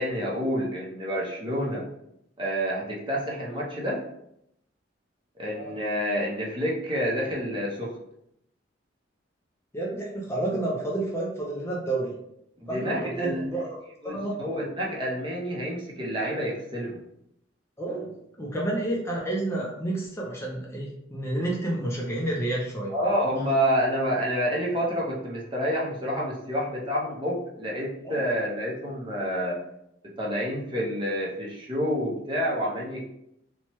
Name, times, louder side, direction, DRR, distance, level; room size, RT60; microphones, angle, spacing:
voice 1, 0.0-1.9 2.4-4.0 5.4-8.0 12.6-13.5 14.0-17.0 22.9-29.6 30.2-33.0, equal, 25° right, -4 dB, 0.7 m, -28 dB
voice 2, 9.7-12.2 12.7-13.8 14.0-14.4 17.8-18.1 18.4-22.9 28.0-28.2, right 2 dB, 15° left, -3 dB, 0.4 m, -30 dB
2.9 x 2.2 x 2.9 m, 0.77 s
head